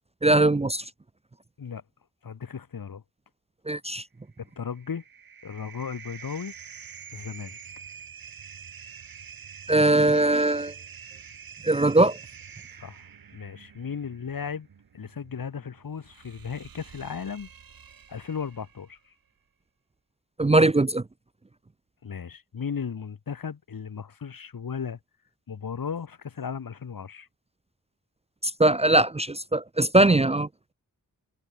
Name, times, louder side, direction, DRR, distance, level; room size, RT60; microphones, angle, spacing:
voice 1, 0.2-0.8 3.7-4.0 9.7-10.7 11.6-12.2 20.4-21.0 28.4-30.5, right 2 dB, 20° right, 0.5 m, -21 dB
voice 2, 2.2-3.0 4.6-5.0 5.4-6.5 7.1-7.6 12.8-13.0 13.3-14.7 14.9-17.5 18.1-19.0 22.0-25.0 25.5-27.3, left 6 dB, 70° left, 2.7 m, -35 dB
sound 1, 4.4-19.0, right 7 dB, 75° right, 2.1 m, -47 dB
wide cardioid pair, 135°, 35 cm